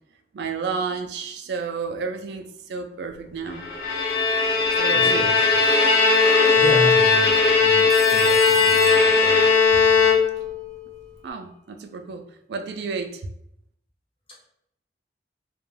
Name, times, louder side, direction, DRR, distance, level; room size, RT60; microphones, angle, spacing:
voice 1, 0.3-3.7 4.8-5.3 11.2-12.2 12.5-13.2, right 5 dB, 80° right, 5 dB, 0.4 m, -31 dB
Bowed string instrument, 3.6-10.6, left 4 dB, 70° left, 0.6 m, -18 dB
voice 2, 4.9-5.6 6.6-9.5 9.8-10.1, right 1 dB, 30° left, -3 dB, 0.7 m, -32 dB
Telephone, 7.9-10.0, left 1 dB, ahead, 0.3 m, -36 dB
2.3 x 2.1 x 3.1 m, 0.75 s
head